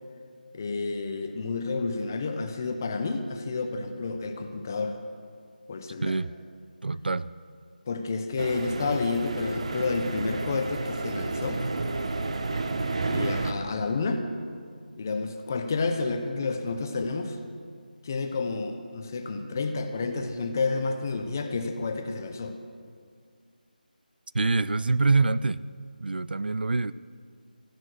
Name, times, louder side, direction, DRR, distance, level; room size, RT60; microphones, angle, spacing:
voice 1, 0.5-5.0 5.7-6.2 7.9-11.6 13.1-14.3 15.0-17.4 18.0-22.6, left 3 dB, 20° left, 7 dB, 0.7 m, -30 dB
voice 2, 6.0-6.3 6.8-7.3 24.3-25.6 26.0-26.9, right 3 dB, 85° right, 17 dB, 0.4 m, -25 dB
sound 1, 8.4-13.5, right 3 dB, 40° right, 0.8 m, -31 dB
14.0 x 11.0 x 6.3 m, 2.1 s
figure-of-eight pair, 175°, 5 cm